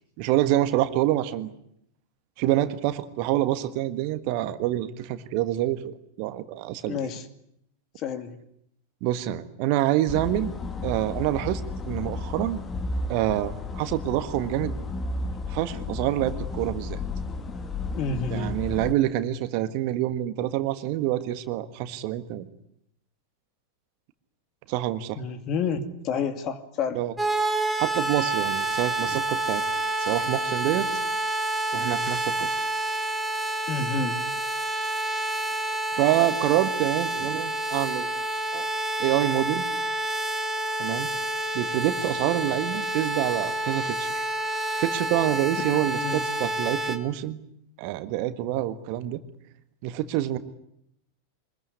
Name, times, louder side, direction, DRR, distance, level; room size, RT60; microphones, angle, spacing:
voice 1, 0.2-1.5 2.4-7.0 9.0-10.5 10.8-11.6 11.9-12.6 13.1-14.7 15.5-17.0 18.3-22.5 24.7-25.2 26.9-27.1 27.8-29.6 30.0-30.9 31.7-32.7 35.9-38.1 38.5-38.7 39.0-39.7 40.8-41.1 41.5-44.2 44.8-47.4 47.8-49.2 49.8-50.4, right 14 dB, 45° right, 11 dB, 1.6 m, -26 dB
voice 2, 6.9-7.2 8.0-8.4 17.9-18.6 25.2-27.0 33.7-34.2 45.7-46.2, left 5 dB, 35° left, 10 dB, 2.4 m, -29 dB
sound 1, 10.1-18.9, left 3 dB, 20° left, 2.4 m, -33 dB
sound 2, 27.2-47.0, right 1 dB, 5° right, 2.4 m, -28 dB
24.5 x 21.5 x 9.7 m, 0.75 s
figure-of-eight pair, 90°, 0 cm